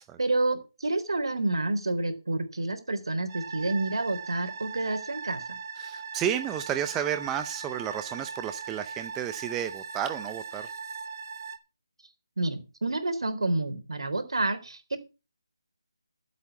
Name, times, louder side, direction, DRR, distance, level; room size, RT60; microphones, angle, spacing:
voice 1, 0.0-5.6 12.4-15.0, right 2 dB, 75° right, 3.9 m, -29 dB
sound 1, 3.3-11.6, right 5 dB, 40° right, 1.4 m, -39 dB
voice 2, 5.8-10.7, right 10 dB, 10° right, 0.6 m, -32 dB
13.0 x 8.2 x 6.0 m
figure-of-eight pair, 165°, 3 cm